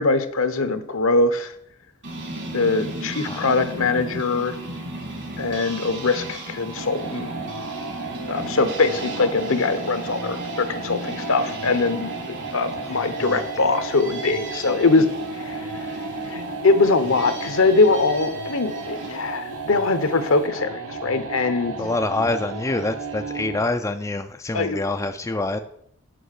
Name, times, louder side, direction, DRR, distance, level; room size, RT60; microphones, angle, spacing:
voice 1, 0.0-1.5 2.5-4.5 5.4-7.3 8.3-12.1 12.5-15.1 15.4-15.7 16.3-21.8 24.5-24.8, left 3 dB, 65° left, 10 dB, 0.9 m, -22 dB
sound 1, 2.0-19.2, right 1 dB, 55° right, 1.9 m, -35 dB
sound 2, 6.8-23.8, right 3 dB, 80° right, 1.1 m, -34 dB
voice 2, 21.8-25.6, left 2 dB, 15° left, 6 dB, 0.4 m, -26 dB
7.8 x 5.7 x 6.5 m, 0.71 s
head